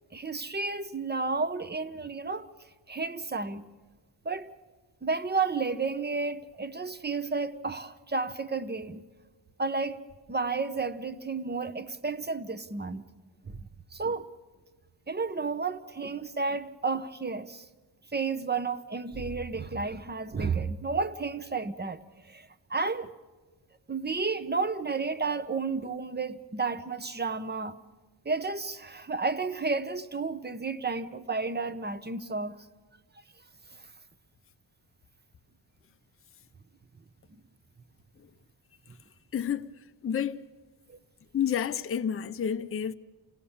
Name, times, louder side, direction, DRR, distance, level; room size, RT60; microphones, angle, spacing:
voice 1, 0.1-2.5 2.9-3.6 4.2-4.5 5.0-9.0 9.6-10.0 10.3-13.0 13.5-13.6 13.9-14.3 15.1-17.7 18.1-22.0 22.3-23.1 23.9-27.8 28.2-32.6 40.9-41.0, right 4 dB, 20° right, 0.8 m, -32 dB
voice 2, 39.3-39.7 40.0-40.4 41.3-42.9, left 8 dB, 30° left, 0.6 m, -30 dB
28.0 x 17.0 x 7.1 m
wide cardioid pair, 110°, 44 cm